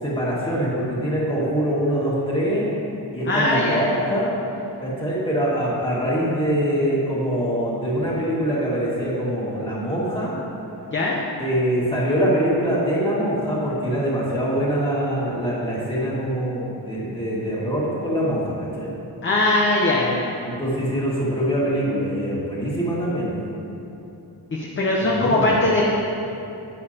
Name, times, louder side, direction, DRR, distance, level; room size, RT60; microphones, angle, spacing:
voice 1, 0.0-2.7 3.1-4.3 4.8-10.4 11.4-18.9 20.4-23.4 25.0-25.6, equal, 10° left, -7 dB, 1.9 m, -24 dB
voice 2, 3.3-3.8 10.9-11.2 19.2-20.3 24.5-25.9, left 2 dB, 30° left, -3 dB, 0.7 m, -20 dB
10.5 x 8.7 x 2.8 m, 2.9 s
wide cardioid pair, 160°, 42 cm